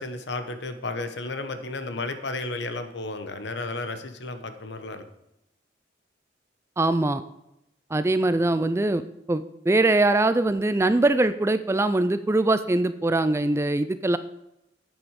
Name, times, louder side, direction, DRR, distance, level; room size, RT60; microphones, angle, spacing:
voice 1, 0.0-5.0, left 2 dB, 70° left, 9 dB, 1.0 m, -33 dB
voice 2, 6.8-7.2 7.9-9.0 9.3-14.2, right 2 dB, 15° right, 13 dB, 0.3 m, -22 dB
9.0 x 7.8 x 4.8 m, 0.85 s
head